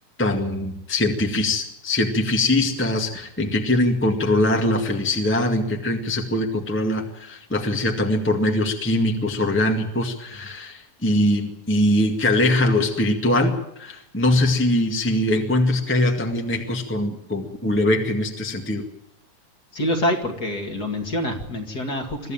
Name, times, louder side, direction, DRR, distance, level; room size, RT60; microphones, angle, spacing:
voice 1, 0.2-18.8, left 1 dB, 5° left, 2 dB, 1.4 m, -22 dB
voice 2, 19.7-22.3, left 1 dB, 35° left, 3 dB, 2.5 m, -26 dB
23.5 x 14.0 x 9.1 m, 0.80 s
omnidirectional pair, 3.4 m